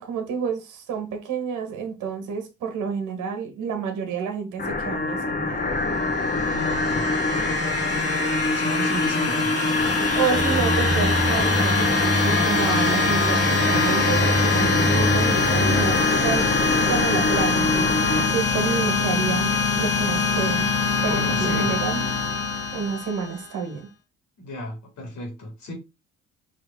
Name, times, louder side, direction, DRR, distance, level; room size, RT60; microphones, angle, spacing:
voice 1, 0.0-5.9 10.1-16.4 16.9-18.0 18.3-19.5 19.8-20.7 21.0-22.1 22.7-23.9, right 6 dB, 85° right, 1.4 m, -29 dB
sound 1, 4.6-18.3, left 2 dB, 30° left, 1.0 m, -25 dB
sound 2, 5.9-23.5, left 4 dB, 50° left, 1.6 m, -24 dB
voice 2, 6.4-7.0 7.3-7.7 8.4-9.5 21.1-21.7 24.4-25.7, left 1 dB, 70° left, 2.5 m, -34 dB
sound 3, 10.3-16.1, equal, 5° right, 0.5 m, -26 dB
4.9 x 3.1 x 3.5 m
cardioid pair, 90°, 30 cm